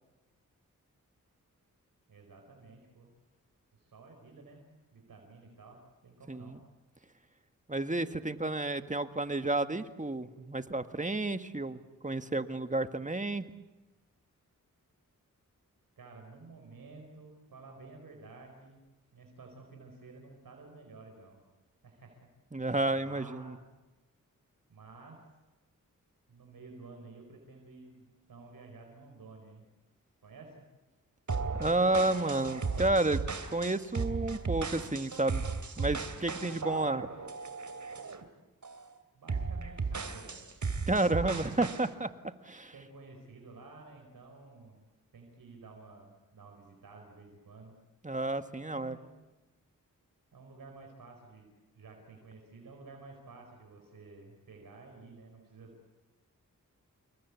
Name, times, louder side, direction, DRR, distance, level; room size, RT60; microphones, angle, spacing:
voice 1, 2.1-3.1 3.7-4.6 4.9-6.6 16.0-18.8 19.1-21.4 21.8-22.3 22.9-23.6 24.7-25.2 26.3-29.6 30.2-30.6 39.1-40.5 40.9-41.5 42.7-44.8 45.1-47.7 48.5-49.1 50.3-51.5 51.7-55.7, right 3 dB, 85° right, 2 dB, 4.7 m, -52 dB
voice 2, 6.3-6.6 7.7-13.5 22.5-23.6 31.6-33.3 33.5-35.5 35.8-37.1 40.9-42.1 42.4-42.7 48.0-49.0, right 2 dB, 20° right, 9 dB, 1.8 m, -31 dB
sound 1, 31.3-38.2 38.6-38.9 39.3-41.9, right 4 dB, 60° right, 2.8 m, -36 dB
28.5 x 22.5 x 8.5 m, 1.1 s
cardioid pair, 50°, 33 cm